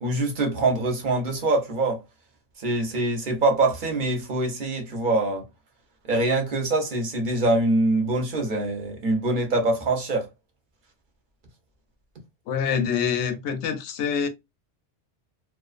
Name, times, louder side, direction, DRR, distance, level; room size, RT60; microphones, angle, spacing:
voice 1, 0.0-2.0 2.6-5.5 6.0-10.3, right 2 dB, 45° right, 0.9 m, -24 dB
voice 2, 12.5-14.3, left 7 dB, 75° left, 0.9 m, -25 dB
2.4 x 2.3 x 2.4 m
omnidirectional pair, 1.2 m